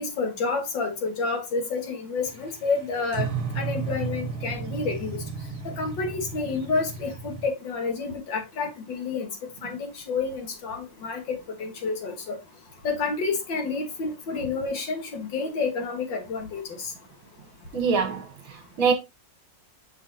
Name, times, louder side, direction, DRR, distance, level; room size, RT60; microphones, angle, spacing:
voice 1, 0.0-3.3 3.6-5.2 5.6-9.3 9.6-12.4 12.8-16.6, left 4 dB, 75° left, 2.1 m, -29 dB
sound 1, 2.3-7.5, right 5 dB, 30° right, 1.2 m, -33 dB
voice 2, 17.7-18.9, right 5 dB, 55° right, 1.3 m, -25 dB
6.2 x 5.7 x 2.7 m
omnidirectional pair, 2.0 m